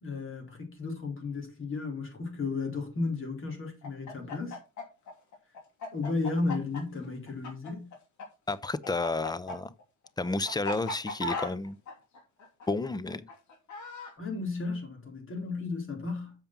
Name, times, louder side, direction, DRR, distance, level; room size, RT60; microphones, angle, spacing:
voice 1, 0.0-4.6 5.9-7.9 14.2-16.3, left 3 dB, 45° left, 3.7 m, -34 dB
Chicken rooster, 3.8-8.2 8.5-14.1, left 2 dB, 70° left, 2.7 m, -38 dB
voice 2, 8.5-9.7 10.2-11.8 12.7-13.3, left 3 dB, 15° left, 0.7 m, -31 dB
7.4 x 5.2 x 5.9 m
cardioid pair, 90°, 30 cm